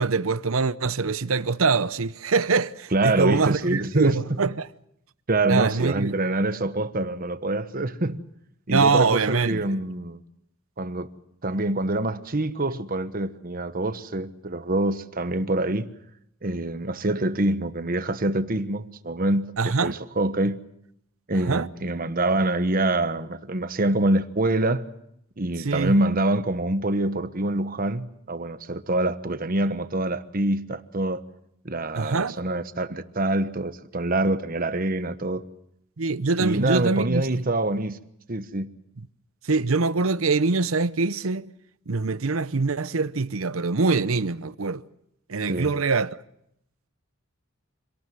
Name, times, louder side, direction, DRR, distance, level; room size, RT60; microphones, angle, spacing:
voice 1, 0.0-4.7 5.5-6.2 8.7-9.6 19.6-19.9 21.5-21.7 25.6-26.0 32.0-32.3 36.0-37.2 39.4-41.5 41.9-44.8 45.3-46.1, right 4 dB, 85° right, 0.8 m, -24 dB
voice 2, 2.9-4.4 5.3-8.2 8.7-10.2 10.8-11.1 11.4-15.9 16.4-20.6 21.3-24.9 25.4-31.2 31.6-35.4 36.4-38.0 38.3-38.7 45.5-45.7, right 2 dB, 45° right, 1.2 m, -25 dB
26.5 x 18.0 x 7.8 m
head